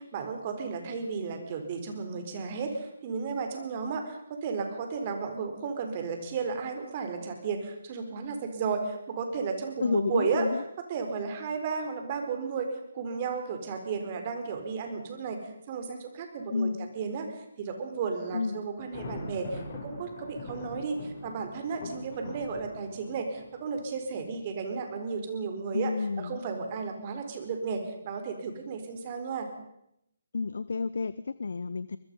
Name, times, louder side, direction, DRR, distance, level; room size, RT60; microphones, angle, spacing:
voice 1, 0.0-10.5 10.9-16.7 16.9-29.5, right 5 dB, 35° right, 5 dB, 4.2 m, -34 dB
voice 2, 9.8-10.6 16.5-16.9 18.3-18.6 25.7-26.4 30.3-32.0, left 4 dB, 70° left, 16 dB, 0.7 m, -30 dB
Thunder, 18.8-24.6, left 2 dB, 35° left, 7.2 m, -43 dB
24.0 x 20.5 x 5.4 m, 0.81 s
figure-of-eight pair, 150°, 0 cm